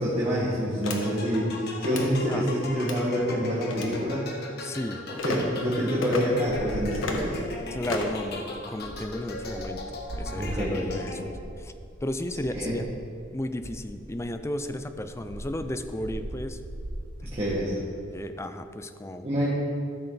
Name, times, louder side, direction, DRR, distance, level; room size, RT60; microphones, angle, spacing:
voice 1, 0.0-4.3 5.1-7.4 10.3-11.3 12.5-12.7 17.2-17.7 19.2-19.5, equal, 30° right, -9 dB, 1.8 m, -27 dB
sound 1, 0.8-1.0 1.8-2.1 2.8-3.0 3.7-4.0 5.2-5.4 6.0-6.2 6.9-7.3 7.8-8.2, left 3 dB, 85° left, 1.1 m, -32 dB
sound 2, 0.8-11.5, left 2 dB, 55° left, 1.2 m, -39 dB
voice 2, 4.6-5.0 7.7-11.7 12.0-12.9 13.3-16.6 18.1-19.3, left 1 dB, 15° left, 8 dB, 0.5 m, -34 dB
sound 3, 6.5-14.4 14.7-18.1, right 1 dB, 60° right, 1.0 m, -40 dB
13.5 x 6.7 x 4.0 m, 2.3 s
head